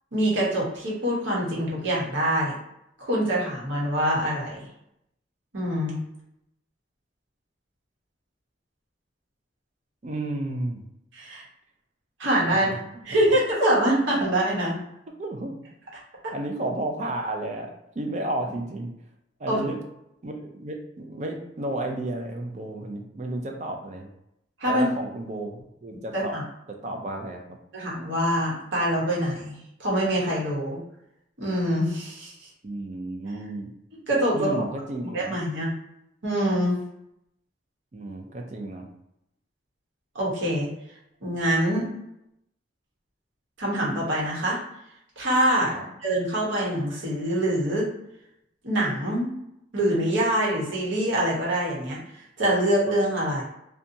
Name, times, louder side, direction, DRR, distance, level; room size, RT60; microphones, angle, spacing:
voice 1, 0.1-2.5 3.0-4.6 5.5-6.0 11.1-11.4 12.2-12.7 13.0-14.8 19.5-19.6 24.6-24.9 26.1-26.4 27.7-30.8 31.4-32.5 34.1-34.6 35.1-35.7 36.2-36.8 40.1-40.7 41.2-41.9 43.6-44.6 45.2-45.7 46.0-47.9 48.6-49.3 49.7-52.0 52.4-53.4, right 1 dB, 80° right, -5 dB, 1.0 m, -24 dB
voice 2, 10.0-10.8 12.5-13.2 15.2-15.6 16.3-18.9 19.4-19.8 20.2-24.1 24.6-26.4 26.7-27.6 32.6-33.7 34.3-35.4 37.9-38.9 45.7-45.8, right 1 dB, 40° right, 2 dB, 0.4 m, -32 dB
2.7 x 2.2 x 2.6 m, 0.81 s
head